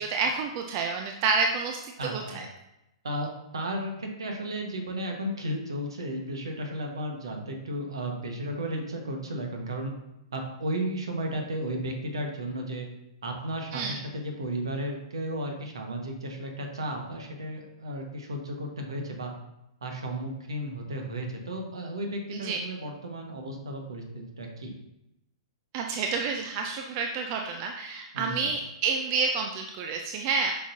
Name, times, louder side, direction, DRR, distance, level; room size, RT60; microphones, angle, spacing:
voice 1, 0.0-2.5 13.7-14.0 22.3-22.6 25.7-30.5, right 4 dB, 40° right, 3 dB, 0.6 m, -29 dB
voice 2, 2.0-2.4 3.0-9.9 10.3-12.9 13.2-19.3 19.8-24.7 28.1-28.5, right 1 dB, 65° right, 2 dB, 1.5 m, -34 dB
8.3 x 5.9 x 2.8 m, 0.87 s
figure-of-eight pair, 110°, 3 cm